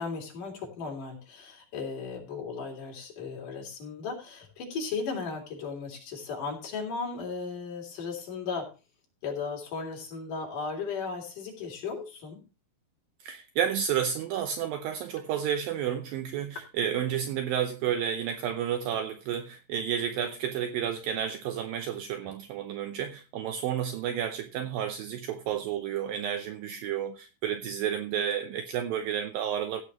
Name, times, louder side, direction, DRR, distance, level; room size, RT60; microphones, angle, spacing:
voice 1, 0.0-8.7 9.2-12.4, left 5 dB, 50° left, 4.7 m, -36 dB
voice 2, 13.2-29.8, right 9 dB, 75° right, 2.2 m, -31 dB
16.5 x 8.6 x 3.1 m
omnidirectional pair, 4.9 m